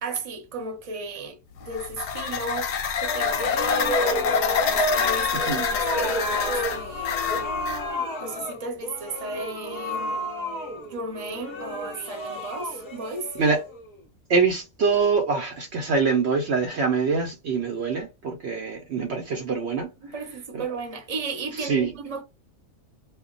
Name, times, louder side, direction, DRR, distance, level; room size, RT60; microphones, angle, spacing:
voice 1, 0.0-2.7 3.0-7.5 8.2-10.3 10.8-13.3 20.0-22.2, right 3 dB, 30° right, 0.8 m, -35 dB
sound 1, 1.6-7.8, left 6 dB, 65° left, 0.8 m, -27 dB
sound 2, 3.0-14.0, left 1 dB, 30° left, 0.6 m, -30 dB
voice 2, 14.3-19.9 20.5-20.6 21.6-21.9, right 5 dB, 65° right, 0.8 m, -24 dB
2.2 x 2.2 x 3.8 m
omnidirectional pair, 1.4 m